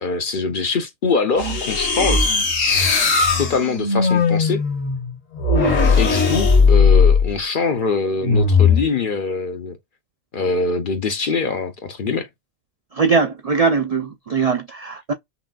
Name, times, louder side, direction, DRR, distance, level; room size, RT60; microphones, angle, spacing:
voice 1, 0.0-2.3 3.4-4.6 6.0-9.8 10.3-12.3, left 4 dB, 50° left, 0.7 m, -23 dB
sound 1, 1.4-7.3 8.2-8.8, left 4 dB, 80° left, 1.9 m, -17 dB
voice 2, 12.9-15.1, right 5 dB, 55° right, 0.4 m, -20 dB
5.8 x 2.4 x 2.3 m
omnidirectional pair, 1.3 m